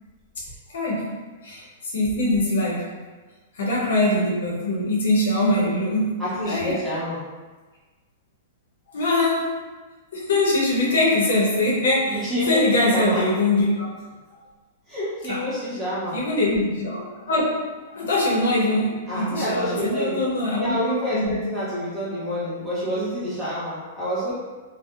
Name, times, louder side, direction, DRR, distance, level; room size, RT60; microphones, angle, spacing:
voice 1, 0.7-1.2 1.4-2.9 3.6-6.2 6.5-6.8 8.9-9.5 10.1-13.9 15.3-15.4 16.1-17.5 17.9-20.8 21.1-21.3, left 1 dB, 85° left, -4 dB, 0.8 m, -22 dB
voice 2, 6.2-7.2 12.1-12.6 12.9-13.2 14.9-16.2 17.9-18.0 19.1-20.2 20.6-24.3, equal, 10° right, -10 dB, 1.2 m, -28 dB
2.6 x 2.1 x 2.4 m, 1.3 s
hypercardioid pair, 145°, 0 cm